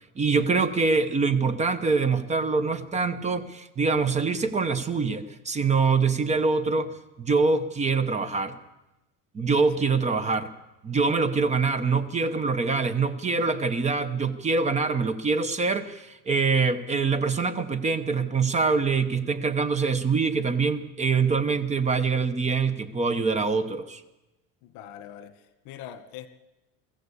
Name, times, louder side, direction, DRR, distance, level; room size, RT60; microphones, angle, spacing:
voice 1, 0.2-8.5 9.3-10.5 10.8-24.0, right 4 dB, 20° right, 0.9 m, -24 dB
voice 2, 24.6-26.3, left 10 dB, 80° left, 1.7 m, -43 dB
22.5 x 14.5 x 8.4 m
cardioid pair, 180°, 37 cm